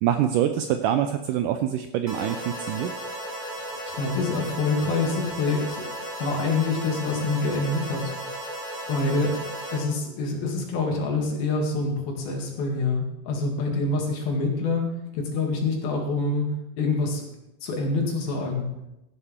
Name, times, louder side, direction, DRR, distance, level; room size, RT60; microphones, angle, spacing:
voice 1, 0.0-2.9, right 10 dB, 85° right, 8 dB, 1.9 m, -25 dB
sound 1, 2.1-9.8, right 1 dB, 20° right, 2.9 m, -35 dB
voice 2, 3.9-5.8 6.2-8.3 8.9-9.4 9.7-16.5 16.8-17.2 17.6-18.6, left 3 dB, 75° left, 0 dB, 3.9 m, -26 dB
15.0 x 11.0 x 3.6 m, 0.92 s
omnidirectional pair, 4.3 m